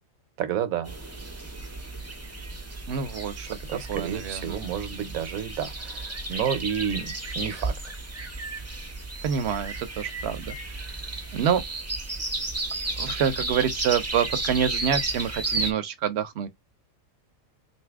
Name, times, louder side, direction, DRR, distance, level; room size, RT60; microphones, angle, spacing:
voice 1, 0.4-0.9 3.6-7.8, right 8 dB, 80° right, 1.1 m, -30 dB
sound 1, 0.8-15.7, right 2 dB, 20° right, 0.4 m, -33 dB
voice 2, 2.9-3.6 3.9-4.6 9.2-10.9 11.3-11.6 13.0-16.5, right 8 dB, 60° right, 0.8 m, -27 dB
2.7 x 2.6 x 3.4 m
omnidirectional pair, 1.5 m